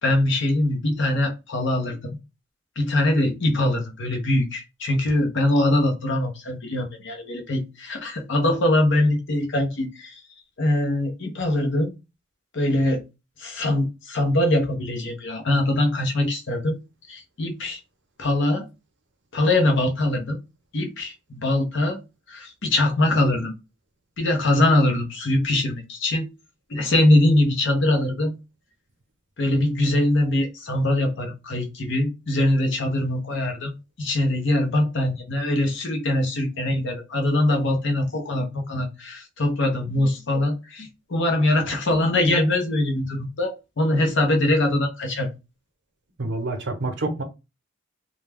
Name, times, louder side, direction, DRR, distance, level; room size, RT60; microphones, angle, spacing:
voice 1, 0.0-2.1 2.8-10.1 10.6-11.9 12.5-13.0 13.4-16.8 17.1-17.8 18.2-18.7 19.3-20.4 20.7-22.0 22.3-23.5 24.2-26.3 26.7-28.3 29.4-45.3, left 1 dB, 65° left, 0.7 m, -22 dB
voice 2, 46.2-47.2, right 2 dB, 65° right, 0.7 m, -27 dB
2.3 x 2.2 x 3.2 m
head